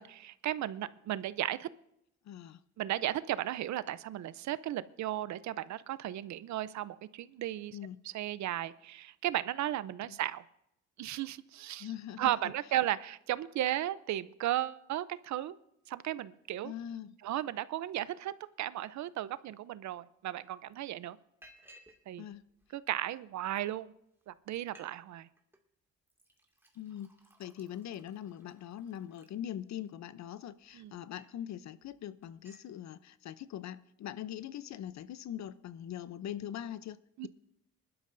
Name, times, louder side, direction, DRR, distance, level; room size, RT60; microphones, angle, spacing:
voice 1, 0.0-1.7 2.8-7.8 8.1-10.4 11.0-11.9 12.2-15.6 15.9-16.7 17.2-18.3 18.6-21.2 22.1-22.2 22.7-23.9 24.3-25.3 30.7-30.9 37.2-37.3, right 13 dB, 70° right, 17 dB, 0.6 m, -35 dB
voice 2, 2.2-2.6 7.7-8.0 10.1-10.2 11.8-12.3 16.6-17.2 22.2-22.4 26.8-27.1 27.4-37.3, left 10 dB, 65° left, 16 dB, 0.7 m, -42 dB
Liquid, 20.2-20.3 20.7-20.9 21.4-22.0 22.3-23.2 23.9-24.0 24.3-24.4 24.6-24.9 25.2-25.6 26.1-29.9 30.4-31.4 31.8-32.0 32.2-32.7, right 1 dB, 10° right, 2.2 m, -61 dB
22.0 x 12.0 x 2.6 m, 0.78 s
cardioid pair, 90°, 30 cm